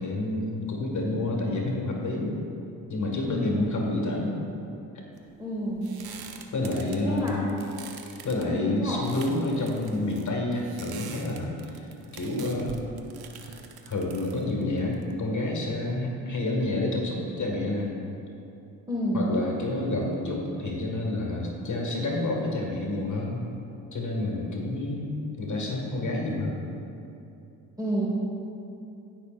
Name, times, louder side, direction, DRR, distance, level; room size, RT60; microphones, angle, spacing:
voice 1, 0.0-2.3 2.9-4.3 6.5-7.4 8.2-11.9 12.1-12.9 13.9-17.9 19.1-23.4 23.9-26.6, left 2 dB, 40° left, -1 dB, 1.9 m, -29 dB
voice 2, 3.2-3.8 5.4-5.9 7.0-7.7 8.5-9.0 18.9-19.3 27.8-28.1, equal, 10° right, -6 dB, 1.7 m, -29 dB
sound 1, 5.1-15.5, right 6 dB, 55° right, 0.9 m, -46 dB
16.0 x 6.1 x 2.5 m, 2.8 s
hypercardioid pair, 50°, 44 cm